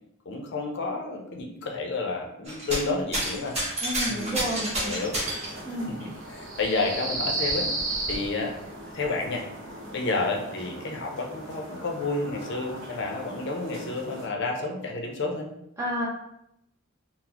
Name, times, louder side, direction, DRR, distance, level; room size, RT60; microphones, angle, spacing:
voice 1, 0.3-3.5 4.1-4.5 4.8-5.2 6.0-7.7 8.1-8.5 8.9-9.5 9.9-15.5, left 3 dB, 60° left, 1 dB, 0.5 m, -30 dB
sound 1, 2.4-2.9 3.1-5.5 6.6-6.7 7.1-8.2 9.0-9.1, right 1 dB, 35° right, 1.3 m, -30 dB
voice 2, 3.8-4.9 5.2-5.3 5.6-5.9 15.8-16.1, right 1 dB, 15° right, -8 dB, 0.4 m, -31 dB
sound 2, 4.2-14.3, right 2 dB, 65° right, 0.7 m, -36 dB
3.9 x 2.0 x 2.8 m, 0.81 s
head